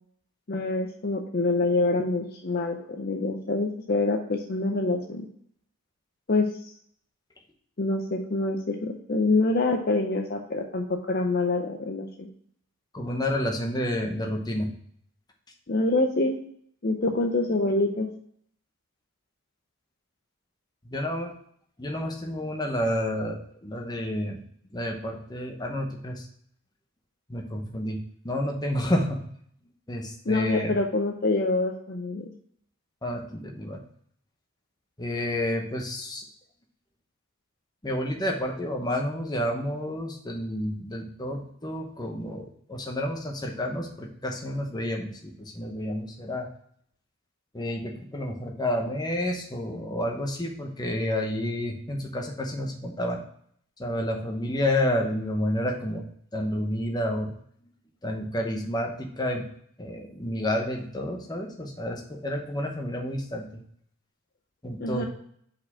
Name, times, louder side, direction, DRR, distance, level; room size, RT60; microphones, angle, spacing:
voice 1, 0.5-5.3 6.3-6.7 7.8-12.3 15.7-16.4 16.8-18.1 30.3-32.3 64.8-65.1, left 2 dB, 45° left, 3 dB, 0.6 m, -26 dB
voice 2, 12.9-14.7 20.9-21.3 21.8-24.4 24.7-26.2 27.3-28.0 28.2-29.2 29.9-30.7 33.0-33.8 35.0-36.2 37.8-46.5 47.5-53.2 53.8-56.0 56.3-57.3 58.0-59.4 59.8-63.4 64.6-65.1, left 1 dB, 20° left, 2 dB, 0.9 m, -30 dB
5.2 x 4.3 x 5.6 m, 0.64 s
head